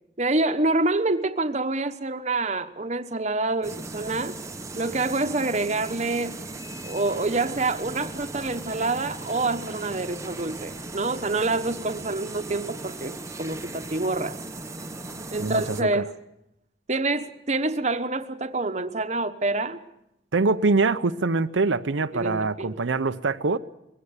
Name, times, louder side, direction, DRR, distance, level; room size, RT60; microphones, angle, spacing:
voice 1, 0.2-4.3 4.8-6.4 6.8-14.4 15.3-16.1 16.9-19.8 22.1-22.8, right 2 dB, 35° right, 1.1 m, -27 dB
sound 1, 3.6-15.8, right 2 dB, 15° right, 0.9 m, -38 dB
voice 2, 15.4-16.0 20.3-23.6, right 3 dB, 90° right, 0.7 m, -24 dB
21.5 x 16.5 x 9.7 m
head